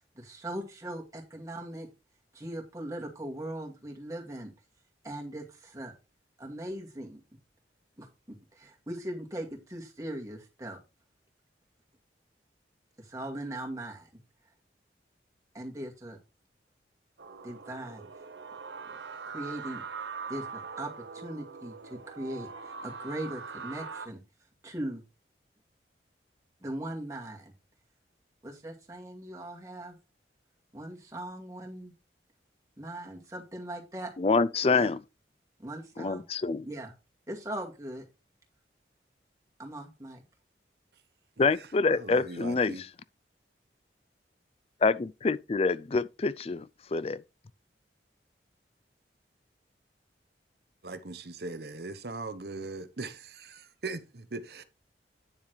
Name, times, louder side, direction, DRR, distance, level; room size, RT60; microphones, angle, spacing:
voice 1, 0.1-1.9 2.3-4.5 5.0-5.9 6.4-7.2 8.0-10.8 13.0-14.1 15.5-16.2 17.4-18.1 18.9-19.0 19.3-19.8 20.3-24.2 24.6-25.0 26.6-27.5 28.4-30.0 30.7-31.9 32.8-34.1 34.7-34.9 35.6-36.2 36.6-36.9 37.3-38.0 39.6-40.2, right 1 dB, 20° right, 2.2 m, -39 dB
sound 1, 17.2-24.1, right 5 dB, 80° right, 1.1 m, -42 dB
voice 2, 34.2-35.0 36.0-36.7 41.4-42.9 44.8-47.2, left 4 dB, 35° left, 0.4 m, -26 dB
voice 3, 41.4-42.8 50.8-54.6, right 3 dB, 60° right, 1.0 m, -40 dB
9.7 x 7.1 x 3.2 m
head